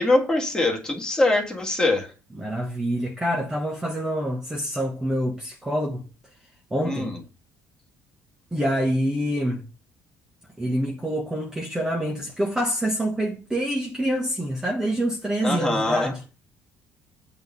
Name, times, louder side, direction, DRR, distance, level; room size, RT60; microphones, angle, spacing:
voice 1, 0.0-2.1 6.8-7.2 15.4-16.1, left 2 dB, 10° left, 1.8 m, -23 dB
voice 2, 2.4-6.0 6.7-7.1 8.5-9.6 10.6-16.2, equal, 10° right, 1.2 m, -26 dB
8.0 x 3.9 x 5.2 m
cardioid pair, 135°, 6 cm